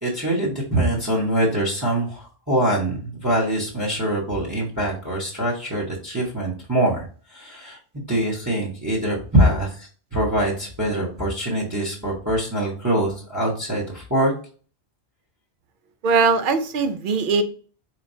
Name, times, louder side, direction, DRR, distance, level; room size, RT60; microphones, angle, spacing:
voice 1, 0.0-14.3, right 1 dB, 15° right, -4 dB, 1.0 m, -24 dB
voice 2, 16.0-17.4, right 4 dB, 60° right, 8 dB, 0.7 m, -20 dB
4.2 x 3.1 x 2.6 m, 0.41 s
omnidirectional pair, 1.1 m